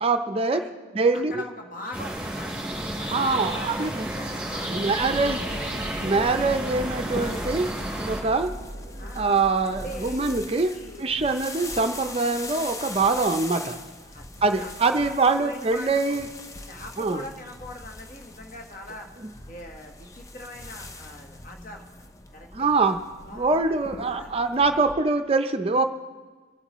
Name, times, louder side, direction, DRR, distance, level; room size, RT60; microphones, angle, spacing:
voice 1, 0.0-0.6 0.9-1.4 3.1-4.1 4.7-5.4 6.0-7.7 8.1-8.5 9.2-10.7 11.0-13.8 14.4-16.3 17.0-17.2 22.5-23.0 23.3-25.8, right 3 dB, 30° right, 7 dB, 0.5 m, -24 dB
voice 2, 1.1-2.6 3.0-5.4 9.0-9.3 9.6-10.2 10.7-11.0 13.1-13.2 14.1-14.3 14.5-14.7 15.0-15.1 15.4-16.2 16.6-19.1 19.5-22.7 23.3-23.6 24.2-24.5, left 1 dB, 45° left, 2 dB, 1.3 m, -42 dB
sound 1, 1.9-8.2, right 1 dB, 5° right, 3.2 m, -32 dB
sound 2, 4.9-10.3, equal, 60° left, 4.4 m, -39 dB
sound 3, 5.6-24.9, left 2 dB, 15° left, 0.5 m, -42 dB
25.0 x 8.5 x 3.0 m, 1.4 s
head